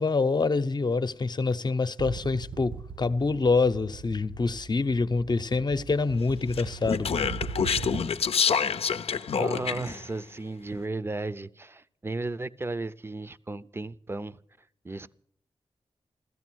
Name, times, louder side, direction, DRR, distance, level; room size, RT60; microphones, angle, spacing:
voice 1, 0.0-7.3, left 3 dB, 45° left, 0.8 m, -26 dB
sound 1, 2.0-8.4, right 5 dB, 55° right, 0.8 m, -40 dB
Speech, 6.5-10.0, left 6 dB, 75° left, 0.6 m, -27 dB
voice 2, 9.2-15.1, right 2 dB, 25° right, 0.6 m, -35 dB
15.5 x 14.0 x 6.2 m
cardioid pair, 65°, 10 cm